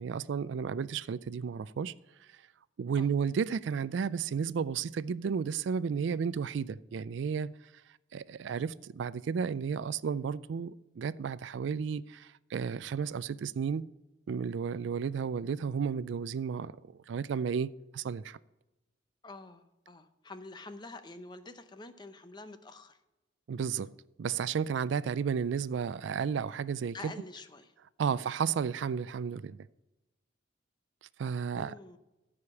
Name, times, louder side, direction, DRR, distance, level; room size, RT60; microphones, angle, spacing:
voice 1, 0.0-1.9 2.8-7.5 8.1-13.9 14.3-16.7 17.1-18.4 23.5-23.9 24.2-27.1 28.0-29.6 31.2-31.7, right 6 dB, 70° right, 0.3 m, -33 dB
voice 2, 19.2-23.0 26.9-27.8 28.1-28.2 31.5-32.0, left 2 dB, 20° left, 0.7 m, -47 dB
14.0 x 5.0 x 7.0 m
head